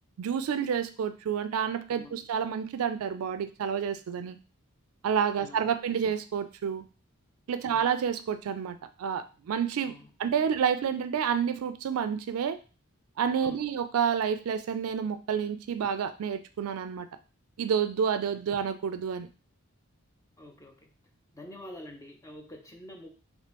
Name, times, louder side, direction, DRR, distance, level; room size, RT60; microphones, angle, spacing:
voice 1, 0.2-4.4 5.0-6.8 7.5-9.9 10.2-12.6 13.2-17.1 17.6-19.3, right 7 dB, 80° right, 11 dB, 0.4 m, -29 dB
voice 2, 20.4-20.9 21.3-23.2, left 1 dB, 15° left, 3 dB, 0.5 m, -47 dB
3.3 x 2.7 x 3.0 m, 0.33 s
head